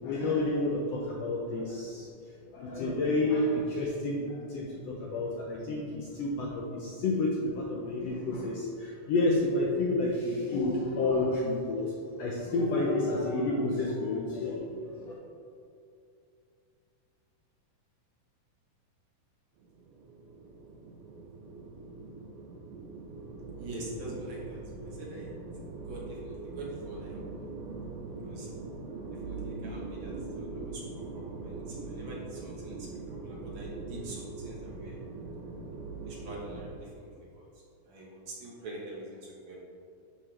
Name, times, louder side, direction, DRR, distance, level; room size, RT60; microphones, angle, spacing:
voice 1, 0.0-2.1 2.5-11.8 12.2-15.1, left 2 dB, 80° left, -3 dB, 1.4 m, -30 dB
sound 1, 19.6-36.7, right 3 dB, 85° right, 2.4 m, -42 dB
voice 2, 23.6-25.3 25.8-27.4 28.2-28.5 29.1-35.0 36.0-39.6, right 1 dB, 60° right, -4 dB, 1.3 m, -45 dB
9.4 x 5.6 x 3.3 m, 2.5 s
omnidirectional pair, 3.8 m